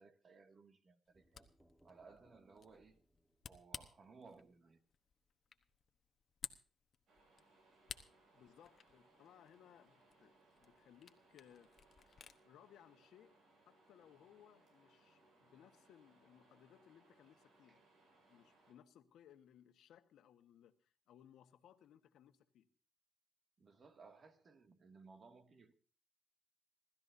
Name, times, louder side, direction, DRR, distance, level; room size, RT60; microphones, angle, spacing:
voice 1, 0.0-1.5 1.8-3.0 3.5-4.8 23.6-25.7, right 4 dB, 45° right, 6 dB, 2.2 m, -61 dB
Camera, 1.1-12.4, left 7 dB, 50° left, 1.0 m, -57 dB
sound 1, 1.1-4.9, right 1 dB, 5° right, 1.5 m, -74 dB
sound 2, 7.1-18.7, right 2 dB, 75° right, 6.1 m, -70 dB
voice 2, 8.3-11.7 12.4-17.8 18.3-22.7, left 10 dB, 80° left, 8 dB, 1.4 m, -64 dB
27.0 x 13.0 x 2.7 m, 0.39 s
cardioid pair, 90°, 0 cm